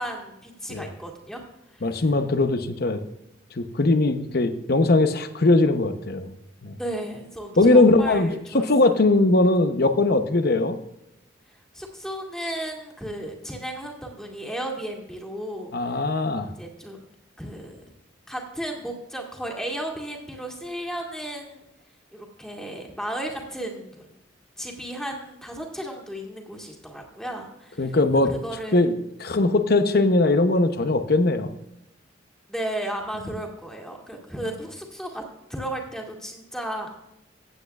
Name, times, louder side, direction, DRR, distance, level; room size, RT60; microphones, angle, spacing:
voice 1, 0.0-1.4 1.7-1.9 6.8-8.7 11.7-15.7 16.6-17.1 17.4-17.8 18.3-21.6 22.1-24.1 24.6-28.8 32.5-35.2 35.5-36.9, right 1 dB, 5° left, 0 dB, 2.0 m, -34 dB
voice 2, 1.8-3.0 3.6-6.3 6.6-6.8 7.6-10.8 15.7-16.5 27.8-28.3 28.7-31.5, left 2 dB, 50° left, 9 dB, 0.8 m, -20 dB
16.0 x 8.5 x 2.4 m, 0.88 s
head